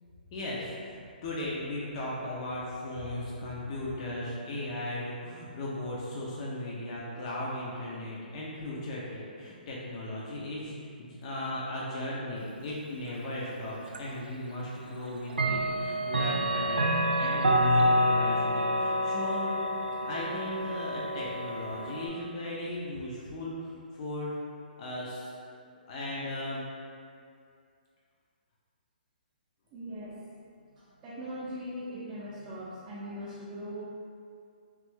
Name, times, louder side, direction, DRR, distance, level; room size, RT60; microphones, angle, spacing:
voice 1, 0.3-19.5 20.0-24.3 24.8-25.3 25.9-26.6, left 1 dB, 40° left, -5 dB, 0.6 m, -37 dB
Clock, 13.9-14.0 15.3-22.1, equal, 85° right, 0.4 m, -27 dB
voice 2, 29.7-30.2 30.8-33.8, equal, 25° right, -10 dB, 0.6 m, -40 dB
3.1 x 2.5 x 3.4 m, 2.3 s
hypercardioid pair, 140°, 5 cm